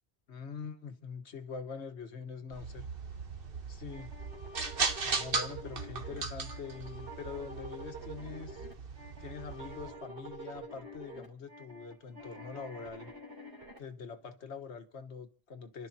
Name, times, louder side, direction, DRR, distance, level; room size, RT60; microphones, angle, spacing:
voice 1, 0.3-2.8 3.7-4.1 5.0-8.7 9.2-13.1 13.8-15.9, left 5 dB, 85° left, 1.5 m, -44 dB
sound 1, 2.5-9.9, right 4 dB, 60° right, 1.3 m, -38 dB
sound 2, 3.9-13.8, right 1 dB, 85° right, 3.4 m, -47 dB
29.5 x 12.0 x 2.8 m
omnidirectional pair, 1.1 m